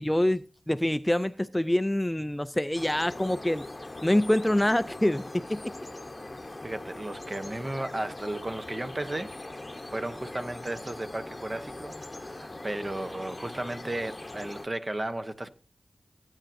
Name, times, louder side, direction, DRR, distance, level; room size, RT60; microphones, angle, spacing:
voice 1, 0.0-3.6 4.0-5.6, left 1 dB, 10° left, 0.4 m, -26 dB
sound 1, 2.7-14.7, left 2 dB, 30° left, 0.9 m, -41 dB
voice 2, 6.6-9.3 9.6-15.5, right 1 dB, 35° right, 0.9 m, -35 dB
15.5 x 9.0 x 2.6 m
cardioid pair, 55°, 0 cm